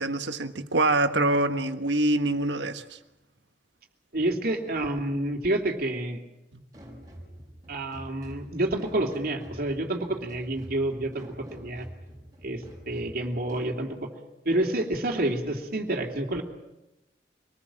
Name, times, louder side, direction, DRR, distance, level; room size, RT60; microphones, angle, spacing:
voice 1, 0.0-2.8, right 2 dB, 85° right, 1.5 m, -25 dB
voice 2, 4.1-6.2 7.7-11.9 12.4-14.1 14.4-16.4, right 1 dB, 55° right, 3.0 m, -29 dB
sound 1, 6.7-13.8, equal, 20° right, 6.1 m, -46 dB
25.0 x 19.5 x 7.7 m
head